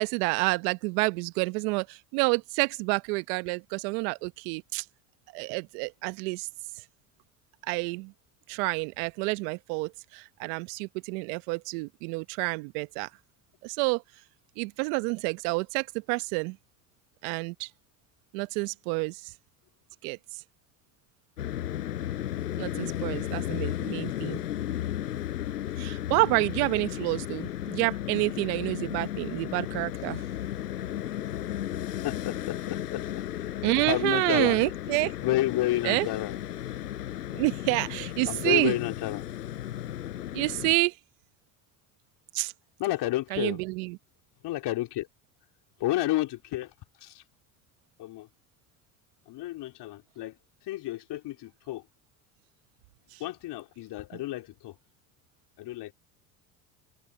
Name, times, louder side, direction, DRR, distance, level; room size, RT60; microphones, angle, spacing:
voice 1, 0.0-4.8 5.3-6.5 7.7-8.1 8.5-13.1 13.6-14.0 14.6-16.6 17.2-17.7 18.3-19.3 20.0-20.4 22.6-24.4 25.8-30.2 33.6-35.1 35.8-36.1 37.3-38.8 40.3-41.0 42.3-42.5 43.3-44.0 53.1-53.2, right 27 dB, 70° right, 1.1 m, -28 dB
sound 1, 21.4-40.7, left 12 dB, 90° left, 5.9 m, -34 dB
voice 2, 32.0-33.0 33.3-33.5 33.9-34.6 35.2-36.4 38.3-39.2 42.8-43.6 44.4-45.1 45.8-46.7 47.0-47.2 48.0-48.3 49.3-50.3 50.7-51.8 53.2-54.7 55.6-55.9, left 16 dB, 55° left, 4.2 m, -30 dB
open air
hypercardioid pair, 75°, 46 cm